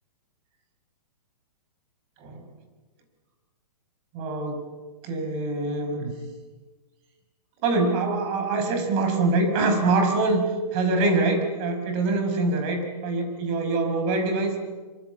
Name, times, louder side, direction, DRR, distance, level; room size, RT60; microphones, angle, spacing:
voice 1, 4.1-4.7 5.0-6.1 7.6-10.4 10.7-14.6, right 3 dB, 30° right, 6 dB, 5.5 m, -24 dB
26.0 x 24.5 x 8.4 m, 1.3 s
hypercardioid pair, 155°, 20 cm